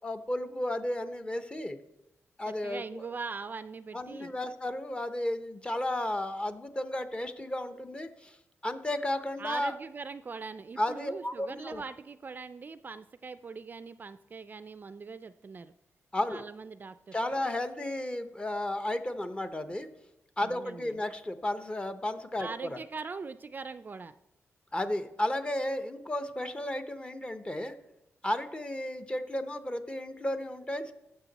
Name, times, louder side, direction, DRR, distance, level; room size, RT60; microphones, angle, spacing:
voice 1, 0.0-1.8 2.4-3.0 3.9-8.3 8.6-9.7 10.8-11.8 16.1-16.4 17.1-19.9 20.4-22.8 24.7-27.7 28.2-30.9, left 1 dB, 20° left, 10 dB, 0.8 m, -33 dB
voice 2, 2.5-4.3 9.4-15.7 16.3-17.1 20.4-21.0 22.4-24.1, right 4 dB, 35° right, 13 dB, 0.4 m, -41 dB
15.0 x 6.6 x 4.0 m, 0.87 s
wide cardioid pair, 115°, 5 cm